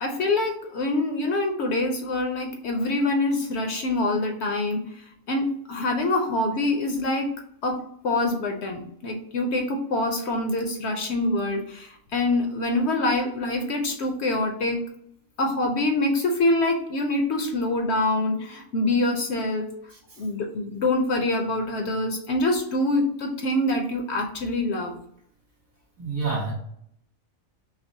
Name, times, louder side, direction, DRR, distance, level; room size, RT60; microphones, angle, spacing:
voice 1, 0.0-7.3 7.6-14.8 15.4-19.7 20.2-24.9, left 2 dB, 60° left, 3 dB, 0.8 m, -25 dB
voice 2, 26.0-26.5, right 4 dB, 75° right, -6 dB, 2.0 m, -28 dB
5.8 x 2.0 x 2.7 m, 0.71 s
omnidirectional pair, 1.4 m